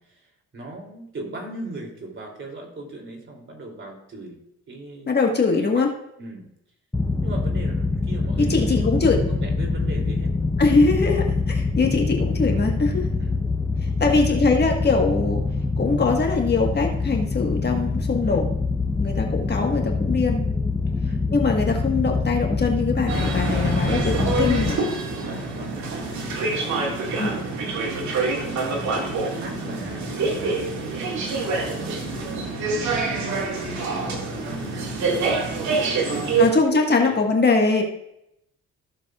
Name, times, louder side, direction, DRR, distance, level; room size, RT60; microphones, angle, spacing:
voice 1, 0.0-4.4 4.7-5.9 6.2-6.5 7.2-10.3 13.2-13.3 14.1-14.4 18.2-18.4 21.0-21.3 24.9-31.1 31.7-32.5 33.2-34.6 35.0-35.3 35.8-36.8 37.0-37.4, right 2 dB, 40° right, 1 dB, 2.9 m, -39 dB
voice 2, 5.1-5.9 8.5-9.2 10.6-13.1 14.0-15.4 15.8-18.4 19.0-20.4 21.3-24.8 27.2-27.4 36.4-37.8, left 4 dB, 35° left, 2 dB, 1.5 m, -22 dB
sound 1, 6.9-24.7, left 3 dB, 5° left, 0.8 m, -24 dB
sound 2, 23.1-36.5, right 3 dB, 70° right, 2.2 m, -26 dB
15.5 x 6.9 x 2.4 m, 0.79 s
cardioid pair, 90°, 30 cm